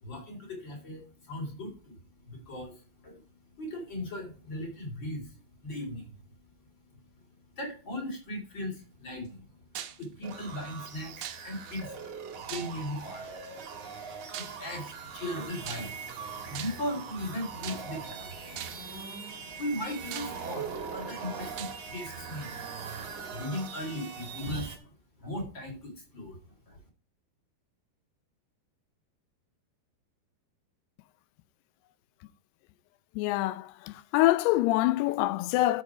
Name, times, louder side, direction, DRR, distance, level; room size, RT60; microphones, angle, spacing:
voice 1, 0.0-1.9 2.2-3.2 3.6-6.2 7.6-9.4 10.0-11.9 12.4-13.3 14.3-18.7 18.9-24.9 25.2-26.4 26.7-26.8, left 1 dB, 30° left, 3.7 m, -38 dB
sound 1, 9.8-10.1 11.2-11.7 12.5-13.0 14.3-14.7 15.6-16.1 16.5-17.0 17.6-18.1 18.6-18.9 19.6-19.7 20.1-20.8 21.6-21.8, right 11 dB, 80° right, 1.8 m, -40 dB
sound 2, 10.2-24.8, right 6 dB, 55° right, 2.1 m, -41 dB
voice 2, 33.2-35.8, left 16 dB, 80° left, 2.6 m, -25 dB
12.5 x 6.3 x 4.8 m
omnidirectional pair, 4.8 m